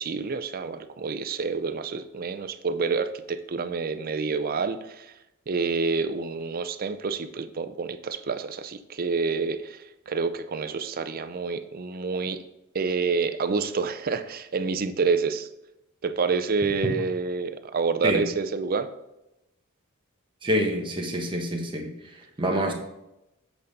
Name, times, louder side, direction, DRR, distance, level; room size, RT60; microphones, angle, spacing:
voice 1, 0.0-5.1 5.5-12.4 12.7-15.5 16.0-18.9, right 4 dB, 40° right, 11 dB, 0.5 m, -28 dB
voice 2, 20.4-21.9 22.4-22.7, equal, 25° right, 1 dB, 1.2 m, -26 dB
8.0 x 5.2 x 4.1 m, 0.91 s
head